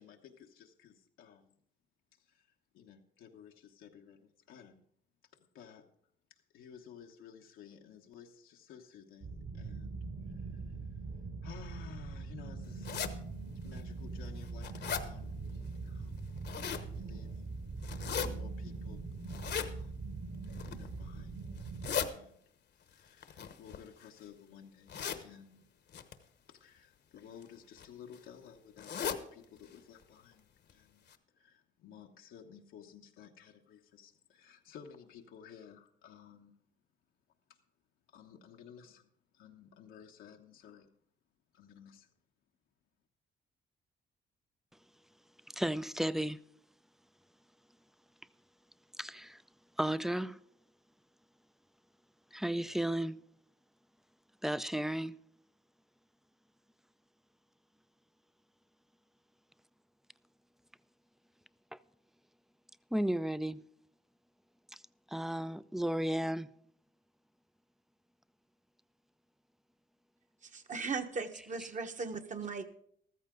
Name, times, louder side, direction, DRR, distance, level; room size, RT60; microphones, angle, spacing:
voice 1, 0.0-1.6 2.2-2.5 2.7-4.8 5.5-5.9 6.3-10.8 11.4-13.1 13.6-16.3 16.9-17.4 18.0-19.0 19.7-20.0 20.6-21.4 22.0-22.4 22.9-26.0 26.5-31.0 31.3-36.5 38.1-40.9 41.5-42.1, left 8 dB, 85° left, 1.1 m, -55 dB
sound 1, 9.2-22.0, right 3 dB, 60° right, 3.9 m, -42 dB
sound 2, 12.8-13.1 13.8-13.9 14.3-15.1 16.2-16.9 17.8-18.3 19.3-19.7 20.4-20.9 21.6-22.1 23.2-24.2 24.9-25.2 25.9-26.1 27.2-27.4 27.8-27.9 28.1-28.2 28.8-29.2 29.6-29.7 30.0-30.1 30.7-30.8 31.1-31.2, left 8 dB, 60° left, 1.1 m, -37 dB
voice 2, 45.5-46.4 49.0-49.4 49.8-50.4 52.3-53.2 54.4-55.2 62.9-63.6 65.1-66.5, right 1 dB, ahead, 0.4 m, -33 dB
voice 3, 70.4-72.7, right 4 dB, 40° right, 1.2 m, -38 dB
14.0 x 13.5 x 3.8 m
cardioid pair, 90°, 20 cm